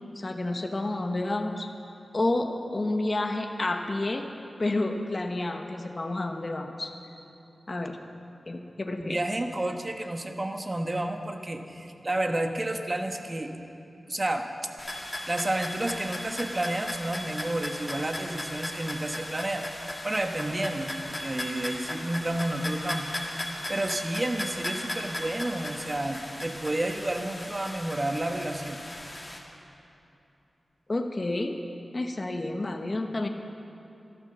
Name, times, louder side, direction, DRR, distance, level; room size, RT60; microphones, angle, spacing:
voice 1, 0.2-1.7 2.1-4.3 4.6-6.9 7.7-8.0 8.5-9.2 30.9-31.6 31.9-33.3, left 2 dB, 40° left, 4 dB, 1.0 m, -30 dB
voice 2, 9.0-13.5 14.1-14.5 15.3-19.6 20.0-23.1 23.7-28.8, right 1 dB, 30° right, 5 dB, 1.2 m, -30 dB
sound 1, 14.8-29.4, left 1 dB, 25° left, 2.3 m, -37 dB
13.5 x 12.0 x 6.9 m, 2.9 s
wide cardioid pair, 75°, 0 cm